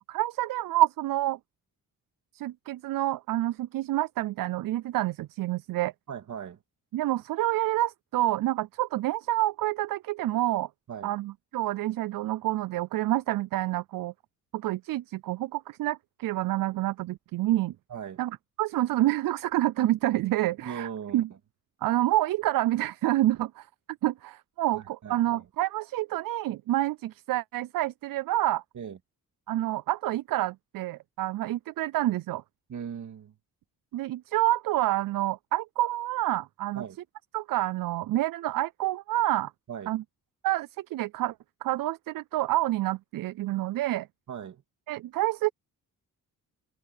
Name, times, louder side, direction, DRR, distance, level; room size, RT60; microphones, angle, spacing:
voice 1, 0.1-1.4 2.3-5.9 6.9-10.7 11.0-14.1 14.5-17.7 18.2-21.3 21.8-23.7 24.0-28.6 29.5-32.4 33.9-36.8 37.3-39.5 39.9-40.0 40.4-41.3 41.6-44.1 44.9-45.5, right 15 dB, 80° right, 0.5 m, -28 dB
voice 2, 6.1-6.6 10.9-11.1 17.9-18.2 20.6-21.2 24.7-25.4 28.7-29.0 32.7-33.3 36.7-37.0 39.7-39.9 44.3-44.6, right 8 dB, 60° right, 2.3 m, -39 dB
cardioid pair, 125°, 33 cm